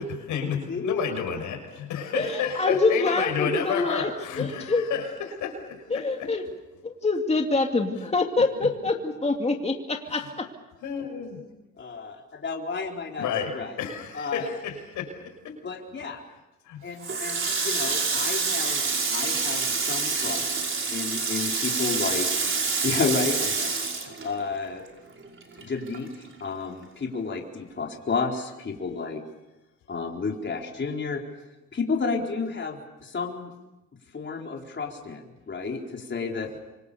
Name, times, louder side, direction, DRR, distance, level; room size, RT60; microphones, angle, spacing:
voice 1, 0.0-6.3 8.6-8.7 10.1-10.3 10.8-11.4 13.2-15.6 16.6-16.8, left 7 dB, 85° left, 4 dB, 6.2 m, -31 dB
voice 2, 0.7-1.0 11.8-13.7 14.1-14.5 15.6-16.2 16.8-18.8 19.1-20.4 20.9-22.5 22.8-23.7 24.0-24.8 25.6-29.2 29.9-31.2 31.7-33.5 34.1-36.5, left 4 dB, 40° left, 1 dB, 4.3 m, -31 dB
voice 3, 2.1-4.1 4.4-4.8 5.9-6.4 6.8-10.5, left 3 dB, 20° left, 3 dB, 2.5 m, -25 dB
Water tap faucet, 17.0-24.9 25.2-26.5, right 4 dB, 45° right, 5.8 m, -27 dB
28.0 x 25.5 x 7.0 m, 1.0 s
cardioid pair, 90°, 30 cm